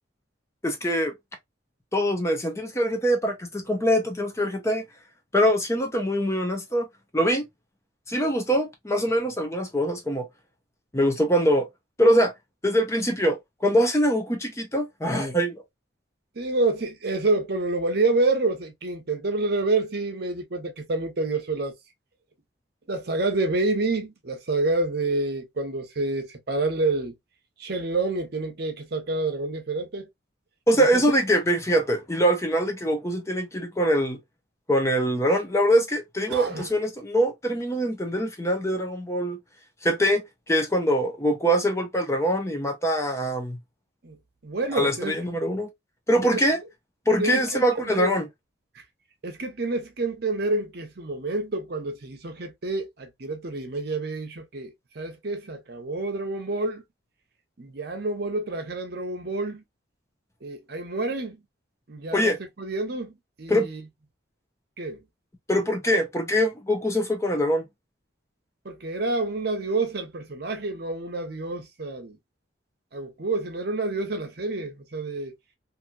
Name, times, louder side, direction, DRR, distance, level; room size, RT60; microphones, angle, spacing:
voice 1, 0.6-1.1 1.9-4.8 5.3-6.9 7.1-7.4 8.1-10.3 10.9-11.7 12.0-12.3 12.6-15.6 30.7-34.2 34.7-39.4 39.8-40.2 40.5-43.6 44.7-45.7 46.1-46.6 47.1-48.3 62.1-62.4 63.5-63.7 65.5-67.6, equal, 15° left, 0.5 m, -23 dB
voice 2, 16.4-21.7 22.9-27.1 27.6-30.1 30.7-31.0 36.3-36.6 44.0-44.2 44.4-45.2 46.2-46.4 47.2-48.1 49.2-56.8 57.6-59.6 60.4-61.4 61.9-62.3 62.6-63.8 64.8-65.0 68.6-72.2 72.9-75.3, right 2 dB, 55° right, 0.7 m, -28 dB
2.8 x 2.6 x 2.2 m
head